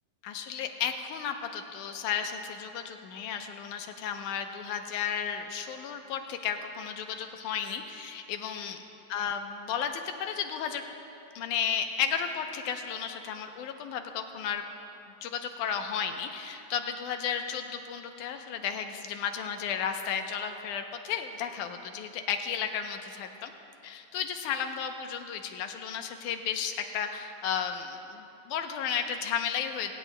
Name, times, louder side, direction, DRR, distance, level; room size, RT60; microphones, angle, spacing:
voice 1, 0.2-8.8 9.1-10.8 11.4-14.6 15.2-23.5 23.8-29.9, left 7 dB, 75° left, 6 dB, 2.1 m, -33 dB
25.0 x 16.5 x 2.2 m, 2.8 s
omnidirectional pair, 3.9 m